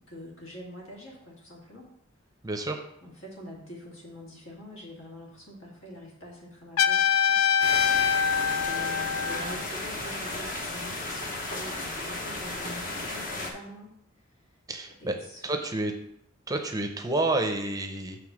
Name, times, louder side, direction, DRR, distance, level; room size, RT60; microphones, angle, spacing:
voice 1, 0.0-1.9 3.0-7.4 8.4-13.9 15.0-15.6, equal, 70° left, -3 dB, 2.2 m, -45 dB
voice 2, 2.4-2.8 14.7-15.1 15.4-15.9 16.5-18.2, right 2 dB, 20° right, 5 dB, 0.6 m, -29 dB
Trumpet, 6.8-9.6, left 7 dB, 85° left, 0.4 m, -24 dB
sound 1, 7.6-13.5, left 2 dB, 40° left, 1.1 m, -34 dB
6.9 x 3.3 x 6.1 m, 0.74 s
head